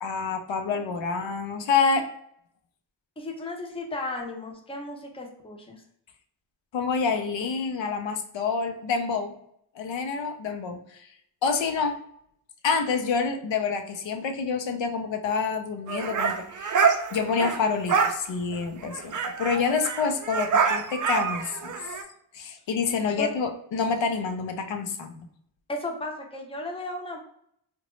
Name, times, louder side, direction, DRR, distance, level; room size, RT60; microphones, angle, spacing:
voice 1, 0.0-2.1 6.7-9.3 9.8-10.8 11.4-12.0 12.6-16.8 17.1-21.8 22.3-25.3, left 5 dB, 75° left, 6 dB, 0.5 m, -27 dB
voice 2, 3.2-5.8 23.2-23.3 25.7-27.2, left 2 dB, 15° left, 1 dB, 0.6 m, -34 dB
sound 1, 15.9-17.6 17.9-18.2 18.5-18.6 18.8-22.0, right 5 dB, 45° right, 0.4 m, -26 dB
3.8 x 2.2 x 3.0 m, 0.69 s
wide cardioid pair, 105°, 45 cm